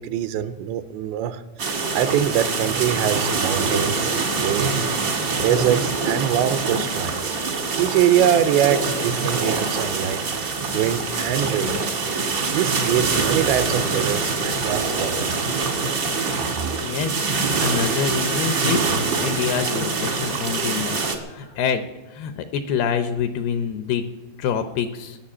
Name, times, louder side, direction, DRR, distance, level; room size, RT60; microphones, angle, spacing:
voice 1, 0.0-4.1 4.4-4.8 5.4-7.3 7.8-10.2 10.7-11.8 12.5-15.3, right 10 dB, 85° right, 11 dB, 2.9 m, -23 dB
sound 1, 1.6-21.2, right 4 dB, 65° right, 1.0 m, -24 dB
voice 2, 16.8-17.2 17.6-18.9 19.2-21.0 21.3-21.8 22.1-24.0 24.4-25.2, left 7 dB, 80° left, 8 dB, 2.4 m, -26 dB
19.5 x 6.8 x 9.8 m, 1.1 s
omnidirectional pair, 5.2 m